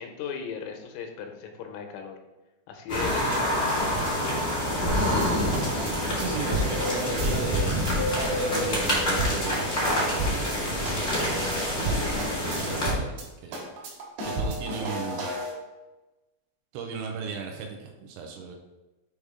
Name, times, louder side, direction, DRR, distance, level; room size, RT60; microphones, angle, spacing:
voice 1, 0.0-2.2 2.7-4.1, left 6 dB, 85° left, 4 dB, 3.4 m, -37 dB
sound 1, 2.9-12.9, left 1 dB, 40° left, 1.0 m, -26 dB
sound 2, 4.9-7.9 8.2-8.6 8.9-9.0 9.2-10.6 10.8-11.2 11.5-11.6 11.8-13.2 13.5-15.5, right 1 dB, 65° right, 3.1 m, -32 dB
voice 2, 6.1-12.0 12.3-13.6 14.2-15.3 16.7-18.6, right 6 dB, 80° right, 2 dB, 2.9 m, -36 dB
8.1 x 3.5 x 4.8 m, 1.1 s
omnidirectional pair, 5.7 m